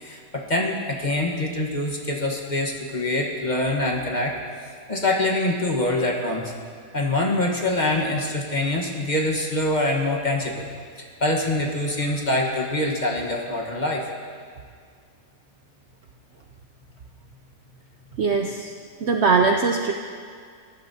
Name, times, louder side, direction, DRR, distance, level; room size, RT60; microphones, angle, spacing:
voice 1, 0.0-4.3 4.9-6.5 6.9-10.7 11.2-14.0, left 1 dB, 30° left, -1 dB, 1.2 m, -24 dB
voice 2, 18.2-18.7 19.0-19.9, right 4 dB, 60° right, 3 dB, 0.7 m, -21 dB
20.0 x 11.0 x 2.8 m, 2.1 s
omnidirectional pair, 1.7 m